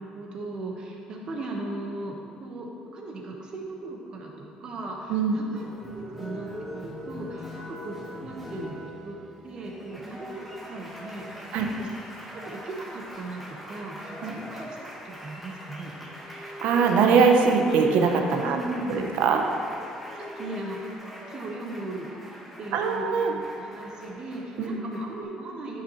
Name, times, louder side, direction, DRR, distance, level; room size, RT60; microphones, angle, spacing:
voice 1, 0.0-5.6 5.9-6.5 6.7-8.0 8.2-9.2 9.4-11.9 12.4-15.9 18.4-19.2 20.1-22.1 22.6-25.8, right 2 dB, 40° right, 0 dB, 1.2 m, -37 dB
sound 1, 4.9-9.0 13.1-14.6 15.4-20.9, left 2 dB, 15° left, 0.6 m, -43 dB
Applause, 5.6-25.2, equal, ahead, 1.5 m, -43 dB
voice 2, 16.4-18.6 18.9-19.4 22.7-23.3 24.6-24.8, right 5 dB, 75° right, 3 dB, 0.7 m, -22 dB
11.0 x 5.7 x 3.1 m, 2.6 s
cardioid pair, 120°, 2 cm